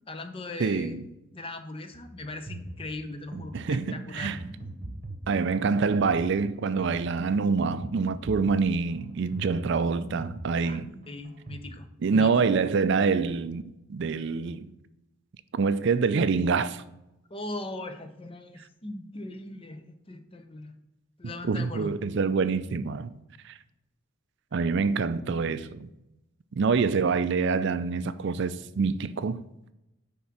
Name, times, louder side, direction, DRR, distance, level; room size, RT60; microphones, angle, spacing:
voice 1, 0.1-1.0 1.3-4.4 10.6-10.8 11.1-12.4 17.3-20.7 21.2-21.9, left 2 dB, 25° left, 0.7 m, -39 dB
voice 2, 0.6-1.1 3.5-4.4 5.3-10.9 12.0-13.6 13.9-14.7 15.5-16.8 21.4-23.1 23.4-23.6 24.5-25.9 26.5-29.4, right 5 dB, 60° right, 0.4 m, -26 dB
sound 1, 1.9-11.7, right 2 dB, 40° right, 1.0 m, -41 dB
9.6 x 3.7 x 5.9 m
head